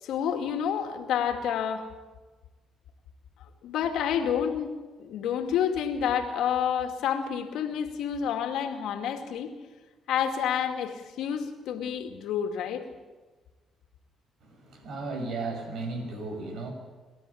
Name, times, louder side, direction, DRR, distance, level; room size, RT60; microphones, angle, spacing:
voice 1, 0.0-1.9 3.6-4.7 5.0-9.5 10.1-12.8, left 8 dB, 85° left, 5 dB, 2.4 m, -29 dB
voice 2, 14.4-16.7, right 3 dB, 75° right, 4 dB, 6.6 m, -35 dB
27.0 x 13.0 x 8.6 m, 1.3 s
cardioid pair, 90°, 0 cm